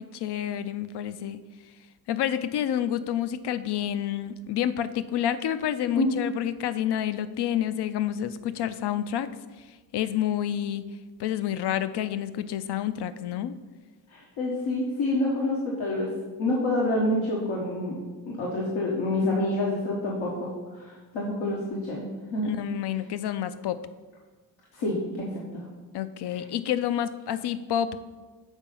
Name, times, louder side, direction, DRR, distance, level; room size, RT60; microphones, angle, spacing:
voice 1, 0.0-1.4 2.1-9.3 9.9-10.8 11.2-13.6 22.4-23.8 25.9-28.0, left 10 dB, 60° left, 13 dB, 0.6 m, -29 dB
voice 2, 14.1-16.1 16.4-18.0 18.4-22.5 24.7-25.6 26.3-26.4, left 1 dB, 85° left, -4 dB, 1.3 m, -28 dB
7.2 x 4.0 x 5.4 m, 1.3 s
supercardioid pair, 55°, 45 cm